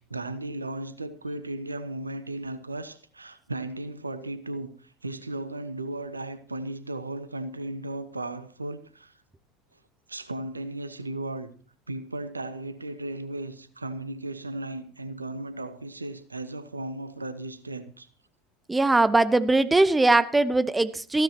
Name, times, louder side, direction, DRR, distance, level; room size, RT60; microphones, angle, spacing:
voice 1, 0.0-9.1 10.1-11.5 11.9-18.1, right 2 dB, 85° right, 1.1 m, -36 dB
voice 2, 18.7-21.2, right 2 dB, 10° right, 1.1 m, -21 dB
19.0 x 15.5 x 2.9 m
figure-of-eight pair, 75°, 0 cm